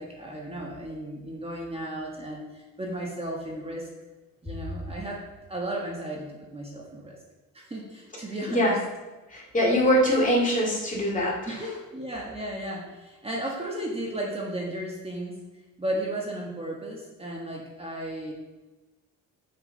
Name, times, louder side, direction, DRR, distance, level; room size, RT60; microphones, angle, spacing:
voice 1, 0.0-3.9 4.4-5.2 5.5-7.2 7.5-8.8 11.5-15.4 15.8-18.3, right 1 dB, 20° right, -2 dB, 1.5 m, -34 dB
voice 2, 8.5-8.8 9.3-11.6, equal, 25° left, -3 dB, 2.5 m, -23 dB
7.4 x 6.6 x 3.9 m, 1.2 s
cardioid pair, 90°, 30 cm